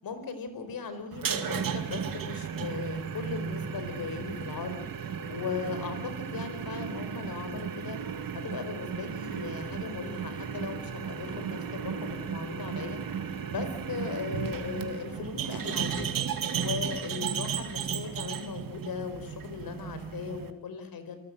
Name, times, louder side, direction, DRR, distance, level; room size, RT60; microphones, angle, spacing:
voice 1, 0.0-4.8 5.3-8.0 8.4-13.0 13.5-21.1, left 5 dB, 75° left, 10 dB, 4.7 m, -38 dB
sound 1, 1.1-20.5, right 7 dB, 70° right, 2.3 m, -35 dB
28.0 x 19.0 x 7.8 m, 0.82 s
supercardioid pair, 50°, 35 cm